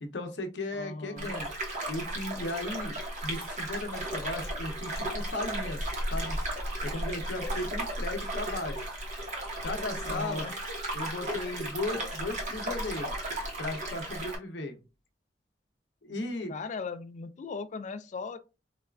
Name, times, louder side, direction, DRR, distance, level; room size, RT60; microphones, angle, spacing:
voice 1, 0.0-1.5 1.9-2.9 3.2-6.4 6.8-8.8 9.6-10.5 10.9-13.1 13.6-14.8 16.0-16.5, left 2 dB, 75° left, 0.7 m, -36 dB
voice 2, 0.7-1.3 10.1-10.6 16.5-18.4, left 4 dB, 40° left, 0.3 m, -38 dB
sound 1, 1.2-14.4, right 1 dB, 45° right, 0.9 m, -35 dB
4.0 x 2.3 x 2.2 m
head